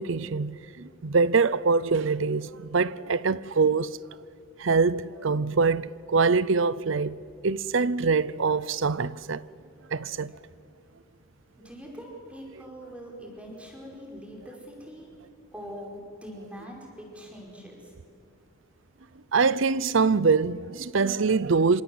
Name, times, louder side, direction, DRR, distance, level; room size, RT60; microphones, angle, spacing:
voice 1, 0.0-4.0 4.6-7.2 7.4-9.4 9.9-10.3 19.3-21.8, right 4 dB, 65° right, 0.6 m, -24 dB
voice 2, 11.6-15.2 15.5-17.9, equal, 5° right, 5.1 m, -43 dB
27.0 x 26.0 x 7.9 m
head